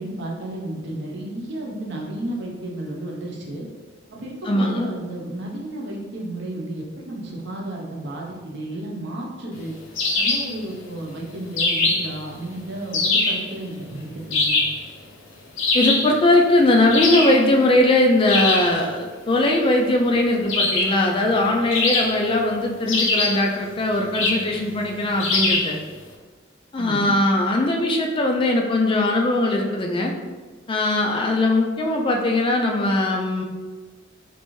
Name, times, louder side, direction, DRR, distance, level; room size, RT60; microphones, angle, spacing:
voice 1, 0.0-3.7 4.1-9.7 10.2-14.6 26.8-27.1, right 1 dB, 60° right, -2 dB, 0.7 m, -32 dB
voice 2, 4.5-4.9 15.7-25.8 26.7-30.1 30.7-33.4, left 2 dB, 25° left, 1 dB, 0.3 m, -20 dB
sound 1, 10.0-10.5 11.6-12.2 12.9-13.5 14.3-14.8 15.6-16.1 16.9-17.4 18.3-18.7 20.5-21.0 21.7-22.4 22.9-23.5 24.1-24.5 25.2-25.7, left 2 dB, 85° left, 0.6 m, -22 dB
3.2 x 2.5 x 3.0 m, 1.4 s
head